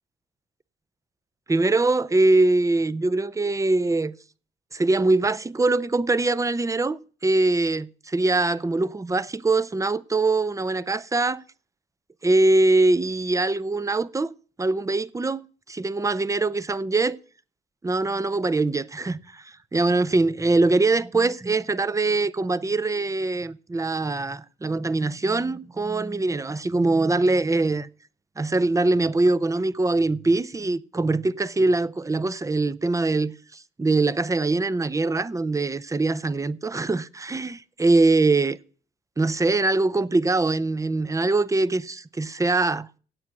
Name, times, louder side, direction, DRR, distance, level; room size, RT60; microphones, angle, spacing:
voice 1, 1.5-4.1 4.7-11.4 12.2-14.3 14.6-17.2 17.8-19.4 19.7-27.9 28.4-38.6 39.2-42.9, right 2 dB, 15° right, 0.7 m, -23 dB
17.0 x 8.1 x 6.0 m
cardioid pair, 90°, 20 cm